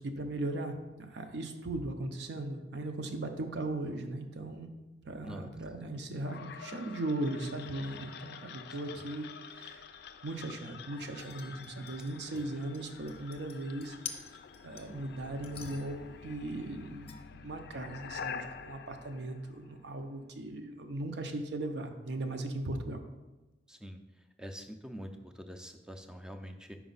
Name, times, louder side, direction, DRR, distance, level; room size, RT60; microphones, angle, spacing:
voice 1, 0.0-4.7 5.0-9.9 10.2-14.0 14.6-23.0, right 2 dB, 65° right, 5 dB, 0.6 m, -38 dB
sound 1, 6.2-20.1, left 6 dB, 60° left, 0.3 m, -47 dB
sound 2, 11.0-15.0 15.4-16.1 17.1-17.2, left 6 dB, 35° left, 0.7 m, -48 dB
voice 2, 23.7-24.0 24.4-26.8, equal, 5° right, 6 dB, 0.4 m, -45 dB
5.1 x 4.6 x 4.0 m, 1.1 s
head